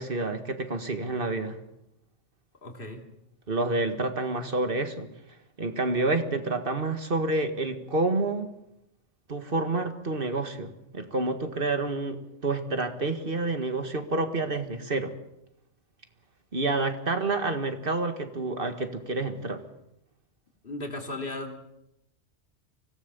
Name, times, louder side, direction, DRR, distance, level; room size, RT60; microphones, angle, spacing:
voice 1, 0.0-1.6 3.5-5.1 5.6-8.5 9.3-15.1 16.5-19.6, right 2 dB, 50° right, 7 dB, 2.0 m, -28 dB
voice 2, 2.6-3.0 20.6-21.6, left 2 dB, 50° left, 3 dB, 3.0 m, -36 dB
25.0 x 17.5 x 6.9 m, 0.87 s
omnidirectional pair, 1.2 m